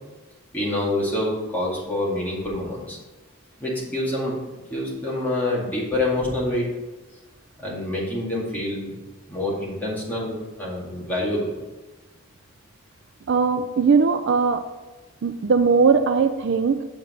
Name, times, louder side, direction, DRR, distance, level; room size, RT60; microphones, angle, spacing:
voice 1, 0.5-3.0 3.6-6.7 7.6-9.0 9.3-11.5, left 1 dB, 10° left, -6 dB, 2.2 m, -26 dB
voice 2, 13.3-14.6 15.2-16.8, right 5 dB, 55° right, 9 dB, 0.4 m, -19 dB
7.2 x 5.2 x 5.2 m, 1.2 s
head